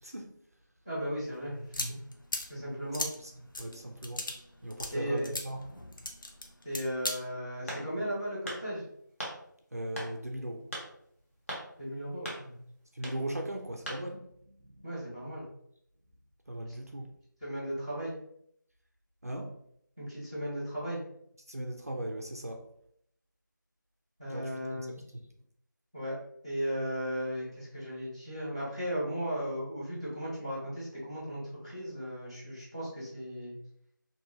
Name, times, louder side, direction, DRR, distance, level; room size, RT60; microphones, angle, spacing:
voice 1, 0.0-0.3 3.2-3.3 3.6-4.3 4.6-5.7 9.7-10.7 12.9-14.8 16.5-17.1 19.2-19.6 21.5-22.7 24.3-25.2, right 1 dB, 50° right, 2 dB, 0.4 m, -38 dB
voice 2, 0.8-2.0 2.5-3.0 4.9-5.3 6.6-8.8 11.8-12.6 14.8-15.5 17.4-18.1 20.0-21.0 24.2-25.0 25.9-26.2 26.4-33.5, equal, 15° left, -10 dB, 0.8 m, -36 dB
sound 1, 1.2-7.2, left 1 dB, 75° left, 0.5 m, -39 dB
sound 2, 7.7-8.1 8.5-8.6 9.2-9.4 10.0-10.1 10.7-10.9 11.5-11.7 12.3-12.4 13.0-13.2 13.9-14.0, right 1 dB, 40° left, 0.9 m, -38 dB
2.6 x 2.3 x 2.7 m, 0.70 s
figure-of-eight pair, 175°, 11 cm